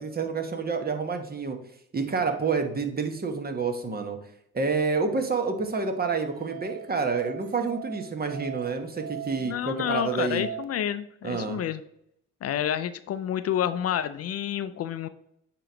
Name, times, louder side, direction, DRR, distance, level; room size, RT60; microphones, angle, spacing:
voice 1, 0.0-1.6 1.9-4.2 4.5-10.4 11.2-11.6, right 4 dB, 30° right, 5 dB, 1.1 m, -28 dB
Musical instrument, 5.4-10.6, right 9 dB, 65° right, 0.6 m, -40 dB
voice 2, 9.4-11.8 12.4-15.1, left 10 dB, 55° left, 13 dB, 0.4 m, -29 dB
8.8 x 3.1 x 5.0 m, 0.75 s
cardioid pair, 90°, 30 cm